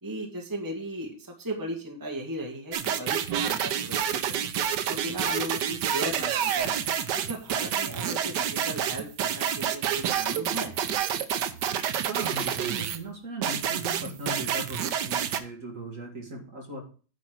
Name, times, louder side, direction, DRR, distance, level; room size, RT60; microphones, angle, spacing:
voice 1, 0.0-4.5 4.9-6.8 7.3-10.7, right 1 dB, 10° right, 1 dB, 1.7 m, -36 dB
sound 1, 2.7-13.0 13.4-15.4, right 9 dB, 70° right, 1.3 m, -28 dB
voice 2, 11.9-16.8, right 1 dB, 40° right, 0 dB, 2.2 m, -39 dB
10.0 x 4.3 x 6.2 m, 0.37 s
omnidirectional pair, 2.1 m